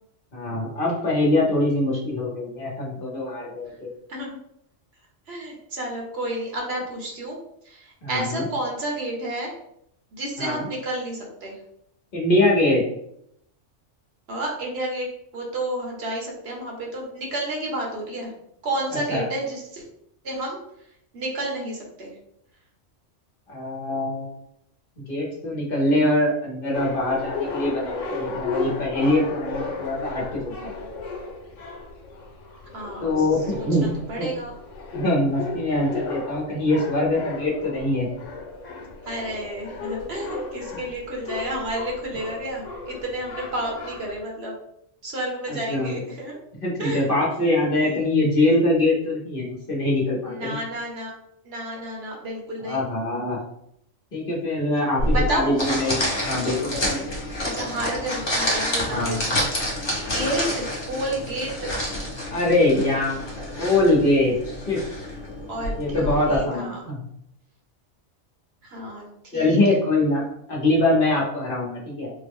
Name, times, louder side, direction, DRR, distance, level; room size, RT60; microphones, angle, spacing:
voice 1, 0.3-3.9 8.0-8.4 10.4-10.6 12.1-12.8 19.1-19.2 23.5-24.3 25.0-31.0 33.0-34.3 34.9-38.1 45.5-46.0 46.6-50.6 52.6-53.4 54.1-56.0 56.2-57.1 58.8-59.3 62.3-64.8 65.8-67.0 69.3-72.1, left 1 dB, 50° left, -3 dB, 1.0 m, -23 dB
voice 2, 4.1-4.4 5.3-7.4 7.6-9.5 10.1-11.6 14.3-15.1 15.3-18.3 18.6-19.9 20.2-20.6 21.1-22.1 32.7-33.2 33.5-34.5 39.1-44.5 45.0-46.4 46.8-47.1 47.8-48.0 50.3-51.1 51.4-52.8 55.1-55.5 57.4-59.4 60.0-61.8 65.5-66.8 68.6-69.1 69.3-69.7, right 1 dB, 60° right, -1 dB, 1.0 m, -30 dB
sound 1, 26.7-44.2, left 4 dB, 85° left, 1.1 m, -34 dB
sound 2, 55.0-66.4, left 1 dB, 25° left, 0.9 m, -28 dB
3.7 x 2.0 x 3.5 m, 0.75 s
omnidirectional pair, 1.3 m